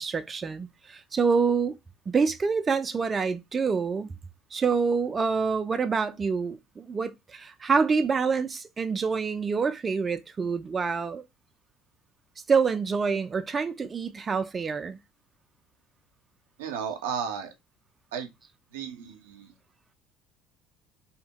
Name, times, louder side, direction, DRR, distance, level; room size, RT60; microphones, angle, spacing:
voice 1, 0.0-1.8 2.1-4.1 4.5-11.2 12.5-15.0, right 5 dB, 30° right, 0.3 m, -26 dB
voice 2, 16.6-17.5 18.1-18.3 18.7-19.5, right 7 dB, 90° right, 0.5 m, -34 dB
2.8 x 2.1 x 2.8 m
hypercardioid pair, 75°, 0 cm